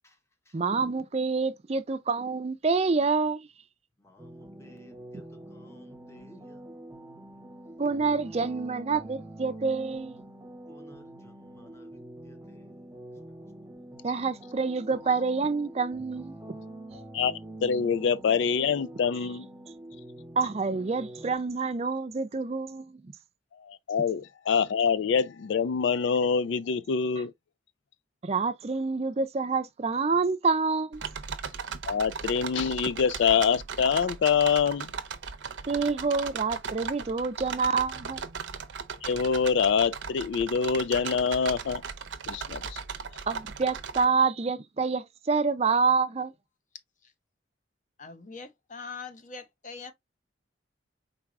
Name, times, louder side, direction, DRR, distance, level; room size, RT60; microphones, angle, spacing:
voice 1, 0.5-3.5 7.8-10.2 14.0-16.6 20.4-23.1 28.2-31.0 35.7-38.2 43.3-46.3, right 4 dB, 35° right, 0.4 m, -27 dB
voice 2, 4.0-6.8 10.7-12.8, equal, 15° left, 0.9 m, -57 dB
sound 1, 4.2-21.3, right 1 dB, 15° right, 0.8 m, -45 dB
voice 3, 17.1-19.5 23.6-27.3 31.9-34.9 39.0-41.8 42.3-42.8, left 6 dB, 75° left, 0.3 m, -25 dB
sound 2, 30.9-44.0, right 6 dB, 75° right, 0.6 m, -37 dB
voice 4, 48.0-49.9, left 4 dB, 40° left, 0.8 m, -42 dB
4.6 x 4.0 x 2.4 m
head